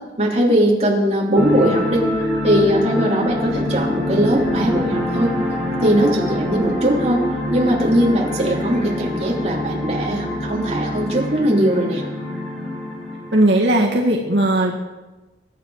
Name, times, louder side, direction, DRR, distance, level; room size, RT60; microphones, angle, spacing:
voice 1, 0.2-2.0 2.4-5.3 5.8-7.2 7.5-12.0, equal, 35° right, -2 dB, 3.0 m, -19 dB
sound 1, 1.3-13.4, left 1 dB, ahead, 5.1 m, -25 dB
sound 2, 3.3-11.1, equal, 65° left, 6.0 m, -38 dB
voice 2, 13.3-14.7, right 1 dB, 75° right, -1 dB, 1.9 m, -17 dB
23.0 x 9.6 x 4.8 m, 1.1 s
head